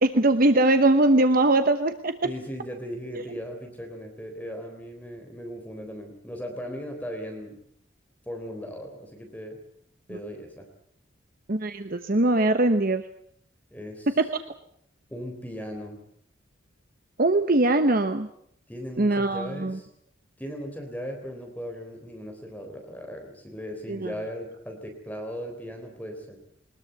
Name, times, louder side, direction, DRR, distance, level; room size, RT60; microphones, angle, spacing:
voice 1, 0.0-2.3 3.3-3.4 11.5-13.0 14.2-14.3 17.2-18.3 19.0-19.8 23.9-24.1, right 2 dB, 45° right, 9 dB, 1.1 m, -21 dB
voice 2, 2.2-7.5 8.3-9.6 10.1-10.7 13.7-14.1 15.1-16.0 18.7-19.9 20.4-26.4, equal, 10° left, 3 dB, 3.7 m, -37 dB
22.0 x 20.5 x 8.1 m, 0.67 s
head